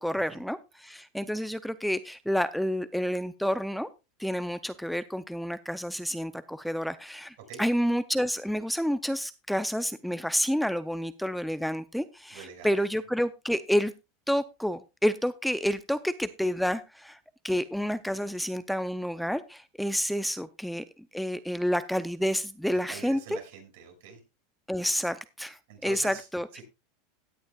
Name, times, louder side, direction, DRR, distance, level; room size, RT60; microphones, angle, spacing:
voice 1, 0.0-3.9 4.2-13.9 14.3-17.2 17.4-20.8 21.1-23.4 24.7-26.5, equal, ahead, 12 dB, 0.5 m, -29 dB
voice 2, 12.3-12.7 22.9-24.2 25.7-26.3 26.5-26.6, right 7 dB, 75° right, 4 dB, 5.6 m, -45 dB
16.5 x 10.0 x 2.3 m, 0.26 s
supercardioid pair, 150°, 0 cm